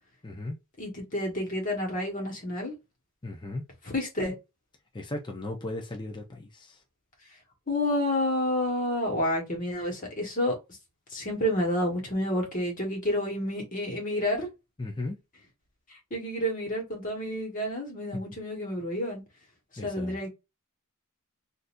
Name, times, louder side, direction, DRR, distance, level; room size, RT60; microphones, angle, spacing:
voice 1, 0.2-0.6 3.2-3.6 4.9-6.7 14.8-15.2 19.8-20.2, left 2 dB, 20° left, 0.6 m, -36 dB
voice 2, 0.8-2.8 3.8-4.4 7.7-10.5 11.1-14.5 16.1-19.2 19.8-20.3, left 1 dB, 35° left, 1.5 m, -29 dB
3.9 x 2.6 x 2.6 m
head